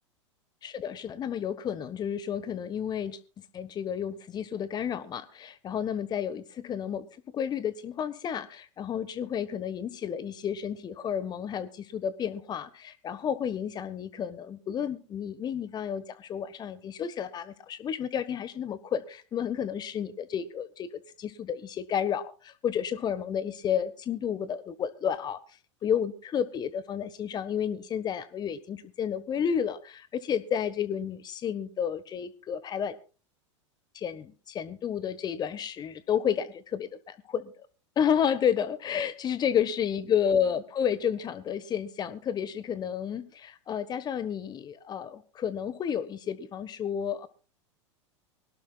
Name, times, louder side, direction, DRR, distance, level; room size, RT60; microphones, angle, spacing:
voice 1, 0.6-3.2 3.5-25.4 25.8-33.0 33.9-37.5 38.0-47.3, left 8 dB, 25° left, 16 dB, 1.2 m, -31 dB
24.5 x 12.0 x 2.3 m, 0.36 s
figure-of-eight pair, 90°, 16 cm